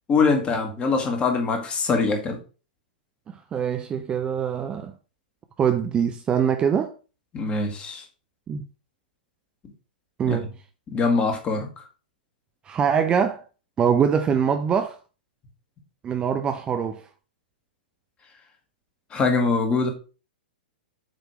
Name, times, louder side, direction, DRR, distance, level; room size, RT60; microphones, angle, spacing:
voice 1, 0.1-2.4 7.3-8.0 10.3-10.4 10.9-11.7 19.1-19.9, left 4 dB, 20° left, 1.7 m, -23 dB
voice 2, 3.3-4.9 5.6-6.9 8.5-8.6 10.2-10.5 12.7-13.4 13.8-15.0 16.0-17.0, right 7 dB, 20° right, 0.5 m, -23 dB
7.6 x 3.3 x 4.8 m
figure-of-eight pair, 110°, 5 cm